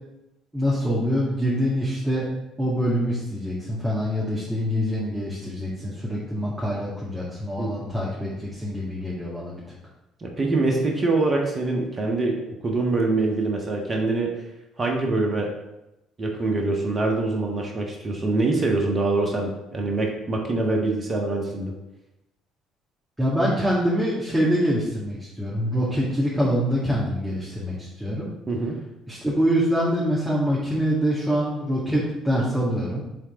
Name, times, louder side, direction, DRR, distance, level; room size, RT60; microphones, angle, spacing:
voice 1, 0.5-2.3 2.6-9.6 23.2-28.3 29.1-33.0, equal, 10° right, -7 dB, 1.9 m, -25 dB
voice 2, 10.2-14.3 14.8-15.5 16.2-21.7 28.5-28.8, right 2 dB, 35° right, 1 dB, 1.4 m, -24 dB
7.4 x 3.7 x 3.7 m, 0.92 s
hypercardioid pair, 55°, 0 cm